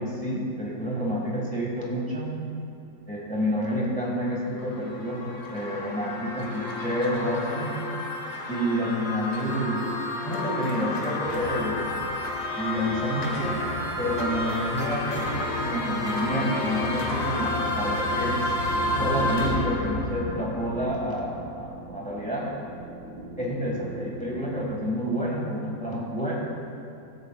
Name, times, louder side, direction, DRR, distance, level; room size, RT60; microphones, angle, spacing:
voice 1, 0.0-2.4 3.1-7.8 8.5-9.8 10.2-11.9 12.5-13.6 14.0-18.5 18.9-22.6 23.4-26.3, equal, 5° left, -4 dB, 1.6 m, -29 dB
sound 1, 4.3-21.3, left 2 dB, 60° left, 1.6 m, -30 dB
sound 2, 17.6-24.6, right 2 dB, 85° right, 3.1 m, -42 dB
17.5 x 8.2 x 2.4 m, 2.6 s
omnidirectional pair, 2.0 m